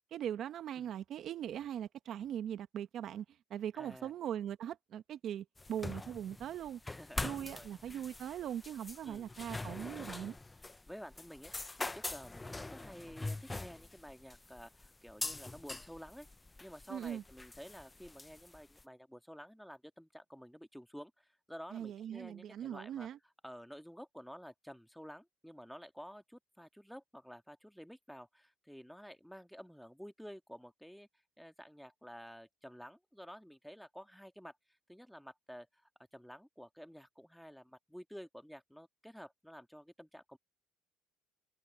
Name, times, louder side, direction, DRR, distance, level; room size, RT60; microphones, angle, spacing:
voice 1, 0.1-3.2 3.5-6.8 7.2-10.4 16.9-17.2 21.7-23.2, right 10 dB, 60° right, 0.9 m, -40 dB
voice 2, 3.7-4.1 6.8-8.1 9.0-9.4 10.9-11.5 11.8-16.3 16.6-23.1 23.4-31.1 31.4-34.6 34.9-40.4, equal, ahead, 1.8 m, -51 dB
sound 1, 5.6-18.8, left 2 dB, 15° left, 0.5 m, -44 dB
supercardioid pair, 80°, 0 cm